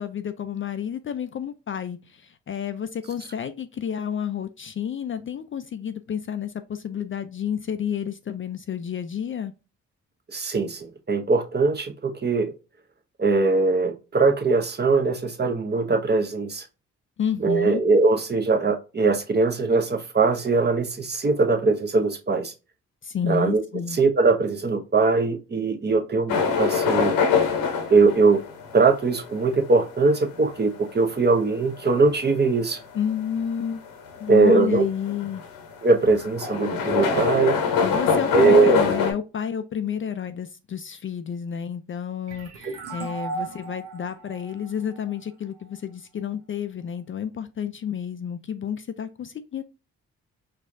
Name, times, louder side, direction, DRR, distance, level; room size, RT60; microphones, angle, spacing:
voice 1, 0.0-9.5 17.2-17.8 23.0-24.0 32.9-33.8 34.2-35.4 37.8-49.6, left 8 dB, 35° left, 0.4 m, -30 dB
voice 2, 10.3-12.5 13.2-16.7 17.4-22.5 23.3-23.6 23.9-27.1 27.9-28.4 28.7-32.8 34.3-34.9 35.8-37.6 38.3-38.8 42.6-42.7, right 4 dB, 30° right, 0.8 m, -21 dB
sound 1, 26.3-39.1, left 6 dB, 75° left, 0.9 m, -25 dB
sound 2, 42.3-45.7, right 4 dB, 90° right, 0.7 m, -37 dB
4.4 x 2.4 x 2.6 m
hypercardioid pair, 40°, 35 cm